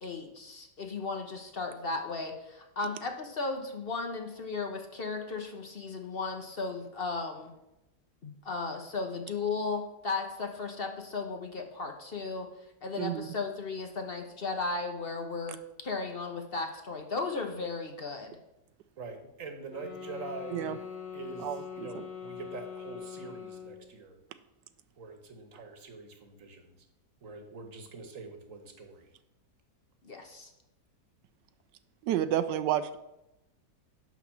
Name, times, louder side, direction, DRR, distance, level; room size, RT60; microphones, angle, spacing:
voice 1, 0.0-7.5 8.2-12.5 12.8-15.6 15.8-18.4 30.0-30.5, left 3 dB, 40° left, 4 dB, 0.9 m, -35 dB
voice 2, 13.0-13.3 20.5-20.8 21.4-22.0 32.0-33.0, right 11 dB, 80° right, 12 dB, 1.2 m, -30 dB
voice 3, 19.0-24.2 25.0-26.8 27.2-29.1, right 3 dB, 50° right, 6 dB, 1.5 m, -45 dB
sound 1, 19.7-23.9, left 7 dB, 65° left, 4.4 m, -43 dB
11.0 x 4.1 x 7.1 m, 0.90 s
omnidirectional pair, 1.8 m